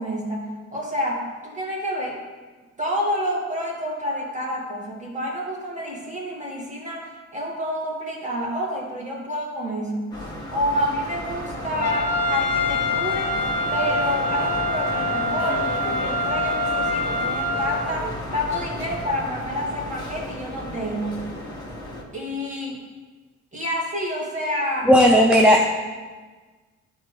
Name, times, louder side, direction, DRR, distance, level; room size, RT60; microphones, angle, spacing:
voice 1, 0.0-2.2 2.8-10.1 10.5-13.4 13.7-21.3 22.1-22.8 23.5-24.9, equal, 25° right, -3 dB, 2.1 m, -28 dB
sound 1, 10.1-22.0, left 1 dB, 15° left, 1.6 m, -33 dB
Trumpet, 11.8-17.9, left 2 dB, 35° left, 0.8 m, -25 dB
voice 2, 24.9-25.6, equal, 5° right, -1 dB, 0.6 m, -14 dB
11.0 x 4.5 x 3.3 m, 1.4 s
cardioid pair, 90°, 30 cm